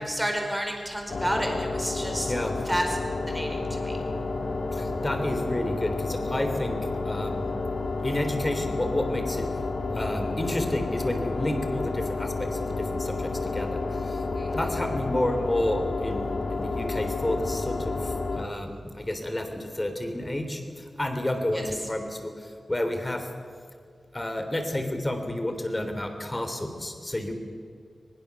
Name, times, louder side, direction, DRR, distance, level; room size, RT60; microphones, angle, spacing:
voice 1, 0.1-2.3 2.6-3.0 3.3-4.0 14.3-14.6 21.5-21.7, equal, 5° right, 2 dB, 4.4 m, -30 dB
sound 1, 1.1-18.5, left 3 dB, 55° left, 1.7 m, -30 dB
voice 2, 4.7-6.8 7.0-7.5 8.0-9.4 9.9-14.2 14.5-23.3 24.1-27.3, left 1 dB, 20° left, 6 dB, 3.3 m, -30 dB
22.5 x 21.5 x 7.0 m, 2.1 s
wide cardioid pair, 120°, 0 cm